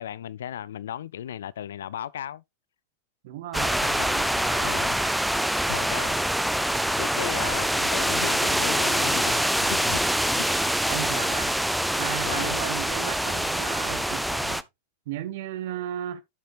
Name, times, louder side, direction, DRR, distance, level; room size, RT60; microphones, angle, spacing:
voice 1, 0.0-2.4 3.8-5.0 5.7-6.2 6.9-10.0 10.3-10.7 12.2-12.6, left 10 dB, 60° left, 0.4 m, -36 dB
voice 2, 3.2-4.8 7.1-7.6 10.9-11.6 11.9-14.6 15.1-16.2, right 11 dB, 50° right, 1.3 m, -35 dB
sound 1, 3.5-14.6, equal, ahead, 0.5 m, -25 dB
9.2 x 7.2 x 2.4 m
figure-of-eight pair, 90°, 0 cm